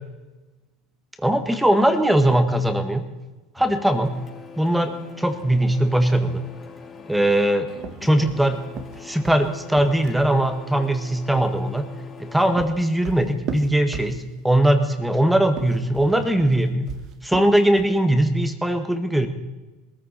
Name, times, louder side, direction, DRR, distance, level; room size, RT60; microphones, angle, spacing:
voice 1, 1.2-3.1 3.5-4.1 4.6-6.5 7.1-7.7 8.0-8.6 9.0-11.9 12.2-16.9 17.2-19.3, right 1 dB, 5° right, 8 dB, 1.8 m, -20 dB
Printer, 3.6-12.6, left 5 dB, 30° left, 3.7 m, -43 dB
sound 1, 7.7-10.4 12.1-14.5 15.4-18.0, right 7 dB, 50° right, 1.6 m, -36 dB
20.5 x 14.5 x 4.3 m, 1.1 s
supercardioid pair, 105°, 0 cm